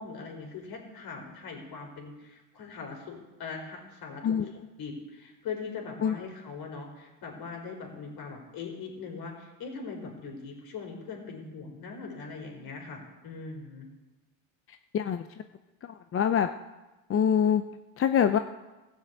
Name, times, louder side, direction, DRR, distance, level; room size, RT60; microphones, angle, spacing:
voice 1, 0.0-4.4 4.8-13.9, left 5 dB, 55° left, 1 dB, 4.9 m, -41 dB
voice 2, 14.9-15.3 16.1-16.5 17.1-17.6 18.0-18.4, left 8 dB, 30° left, 9 dB, 0.6 m, -24 dB
16.0 x 7.3 x 8.2 m, 1.1 s
supercardioid pair, 100°, 43 cm